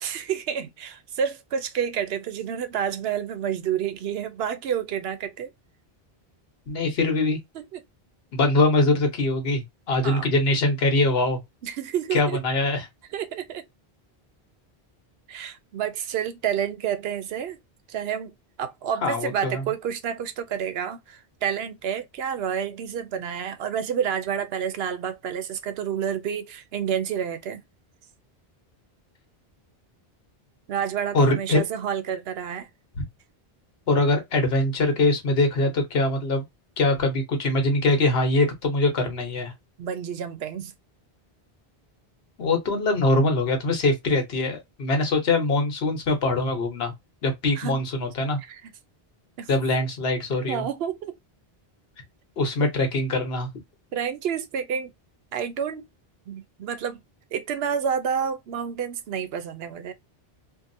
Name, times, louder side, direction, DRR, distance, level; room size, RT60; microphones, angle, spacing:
voice 1, 0.0-5.5 7.5-7.8 10.0-10.3 11.6-12.4 13.1-13.6 15.3-17.6 17.9-18.3 18.6-27.6 30.7-32.7 39.8-40.7 47.6-47.8 48.4-48.6 49.4-49.5 50.5-51.1 53.9-54.9 55.3-55.9 56.3-57.0 57.3-59.9, right 8 dB, 80° right, 0.8 m, -29 dB
voice 2, 6.7-7.4 8.3-11.4 12.1-12.9 19.0-19.6 31.1-31.6 33.9-36.4 36.8-39.5 42.4-46.9 47.2-48.4 49.5-50.7 52.4-53.5, left 2 dB, 75° left, 1.2 m, -23 dB
2.7 x 2.5 x 2.6 m
omnidirectional pair, 1.0 m